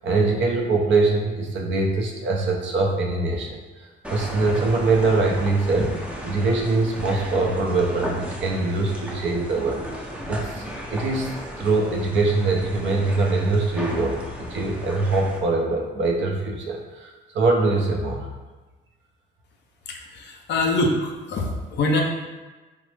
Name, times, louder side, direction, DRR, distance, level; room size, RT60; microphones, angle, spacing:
voice 1, 0.0-5.9 6.2-10.6 10.9-18.3, right 3 dB, 70° right, 1 dB, 0.6 m, -23 dB
sound 1, 4.0-15.4, equal, 5° right, 0.5 m, -34 dB
voice 2, 19.9-22.0, left 2 dB, 60° left, 1 dB, 0.5 m, -24 dB
3.0 x 2.0 x 3.1 m, 1.2 s
cardioid pair, 90°, 20 cm